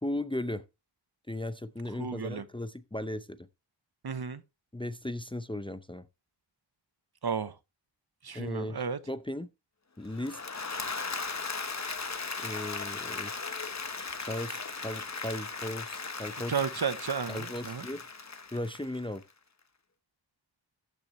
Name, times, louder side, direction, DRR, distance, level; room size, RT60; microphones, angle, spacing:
voice 1, 0.0-0.6 1.3-3.5 4.7-6.1 8.3-9.5 10.0-10.7 12.4-13.3 14.0-16.6 17.3-18.1 18.5-19.2, left 1 dB, 10° left, 0.6 m, -37 dB
voice 2, 2.0-2.4 4.0-4.4 7.2-7.5 8.2-9.0 16.5-17.8, right 6 dB, 60° right, 0.9 m, -33 dB
Applause / Crowd, 10.1-19.2, left 4 dB, 40° left, 1.0 m, -37 dB
14.0 x 6.0 x 3.1 m
wide cardioid pair, 50°, 44 cm